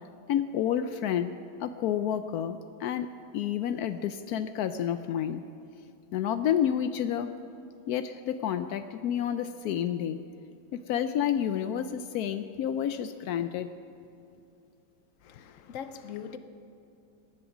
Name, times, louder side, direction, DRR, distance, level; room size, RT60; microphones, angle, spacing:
voice 1, 0.3-1.3 1.6-3.1 3.3-5.4 6.1-7.3 7.9-10.2 10.7-13.7, left 9 dB, 85° left, 10 dB, 0.8 m, -29 dB
voice 2, 15.2-16.4, left 8 dB, 60° left, 10 dB, 0.9 m, -41 dB
18.5 x 11.0 x 6.0 m, 2.7 s
omnidirectional pair, 2.2 m